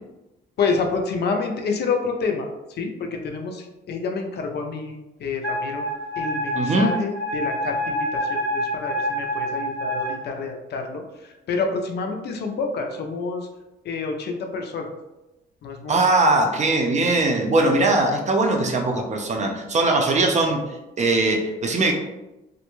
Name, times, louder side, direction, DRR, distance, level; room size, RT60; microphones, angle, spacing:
voice 1, 0.6-5.8 6.2-13.5 13.8-14.9 15.6-16.1, left 4 dB, 55° left, 4 dB, 0.4 m, -28 dB
Wind instrument woodwind instrument, 5.4-10.1, equal, 15° left, 0.7 m, -27 dB
voice 2, 6.6-6.9 15.9-20.6 21.0-21.9, right 2 dB, 35° right, 2 dB, 0.5 m, -20 dB
2.4 x 2.1 x 3.0 m, 0.98 s
cardioid pair, 90°, 20 cm